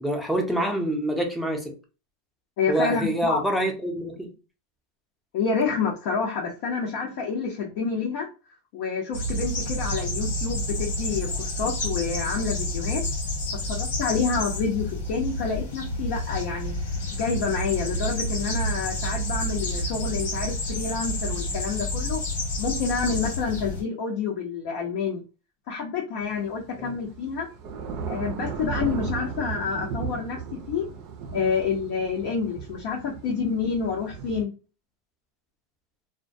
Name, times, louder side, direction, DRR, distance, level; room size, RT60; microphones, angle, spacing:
voice 1, 0.0-1.7 2.7-4.3 26.8-27.0, right 1 dB, ahead, 2 dB, 0.6 m, -26 dB
voice 2, 2.6-3.4 5.3-8.3 8.7-13.0 13.7-16.8 17.2-22.2 22.6-25.2 25.7-27.5 28.1-30.9 31.3-34.5, left 5 dB, 60° left, -2 dB, 0.7 m, -28 dB
sound 1, 9.1-23.8, left 1 dB, 80° left, 1.1 m, -29 dB
Thunder / Rain, 26.2-34.4, right 5 dB, 45° right, 0.4 m, -36 dB
2.2 x 2.1 x 2.6 m, 0.33 s
supercardioid pair, 140°, 0 cm